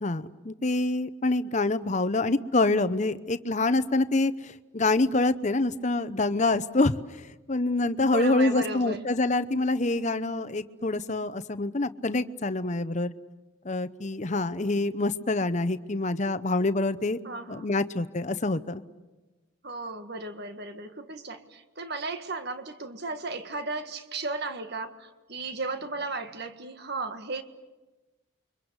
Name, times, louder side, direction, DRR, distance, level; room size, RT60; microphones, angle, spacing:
voice 1, 0.0-7.0 7.5-13.1 13.6-17.2 17.5-18.8, left 2 dB, 35° left, 13 dB, 0.8 m, -26 dB
voice 2, 8.1-9.0 17.2-17.8 19.6-27.4, right 3 dB, 50° right, 8 dB, 1.7 m, -35 dB
29.0 x 24.0 x 8.1 m, 1.2 s
head